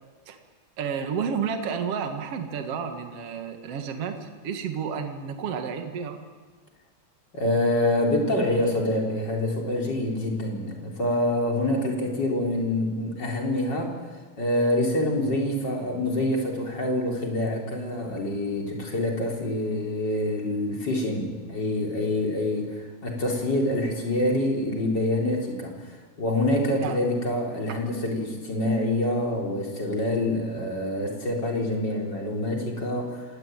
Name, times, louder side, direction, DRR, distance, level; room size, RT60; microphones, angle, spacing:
voice 1, 0.8-6.2 26.8-27.0, right 6 dB, 55° right, 6 dB, 2.7 m, -31 dB
voice 2, 7.3-13.9 14.4-25.8 26.2-33.3, left 1 dB, 35° left, 0 dB, 4.7 m, -26 dB
26.5 x 19.0 x 9.2 m, 1.4 s
omnidirectional pair, 3.3 m